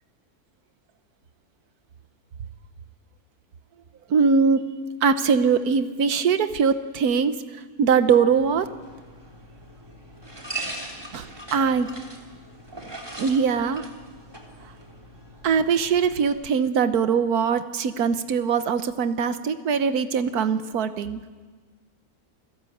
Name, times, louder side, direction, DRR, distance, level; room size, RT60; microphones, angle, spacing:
voice 1, 4.1-4.6 5.0-7.4 7.8-8.7 11.1-11.9 13.2-13.9 15.4-21.2, right 6 dB, 85° right, 10 dB, 1.5 m, -22 dB
sound 1, 8.3-16.3, right 2 dB, 15° right, 3.2 m, -40 dB
28.5 x 17.5 x 7.9 m, 1.5 s
omnidirectional pair, 1.6 m